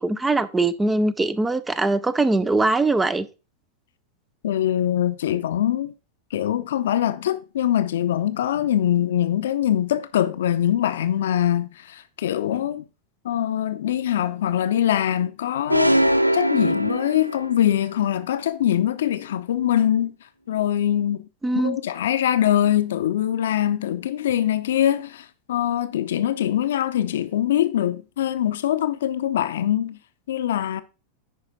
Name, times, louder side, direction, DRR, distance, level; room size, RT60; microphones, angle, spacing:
voice 1, 0.0-3.3 21.4-21.8, right 2 dB, 10° right, 0.6 m, -21 dB
voice 2, 4.4-5.9 6.3-12.8 13.2-20.1 20.5-21.2 21.5-30.0 30.3-30.8, left 11 dB, 60° left, 0.7 m, -23 dB
sound 1, 15.7-17.7, right 1 dB, 90° right, 0.4 m, -21 dB
10.0 x 4.9 x 3.9 m
figure-of-eight pair, 90°, 0 cm